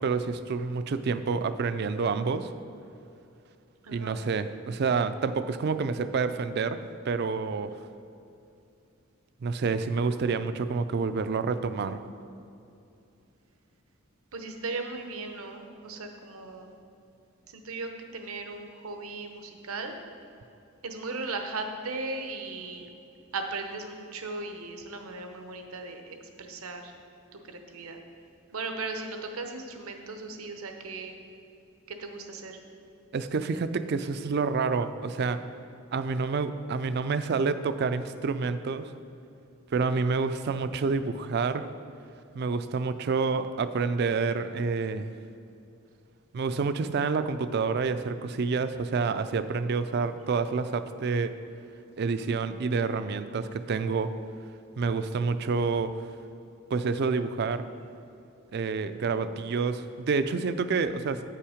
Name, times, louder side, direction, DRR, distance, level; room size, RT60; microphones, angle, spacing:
voice 1, 0.0-2.5 3.9-7.7 9.4-12.0 33.1-35.4 35.9-38.9 39.7-41.7 42.3-45.1 46.3-51.3 52.0-54.2 54.8-56.0 56.7-57.7 58.5-61.2, right 4 dB, 50° right, 12 dB, 0.3 m, -28 dB
voice 2, 3.8-4.2 14.3-16.8 17.5-19.9 20.8-22.9 23.3-26.9 27.5-28.0 28.5-31.1 31.9-32.6, right 3 dB, 80° right, 5 dB, 0.9 m, -37 dB
8.9 x 5.7 x 5.0 m, 2.6 s
head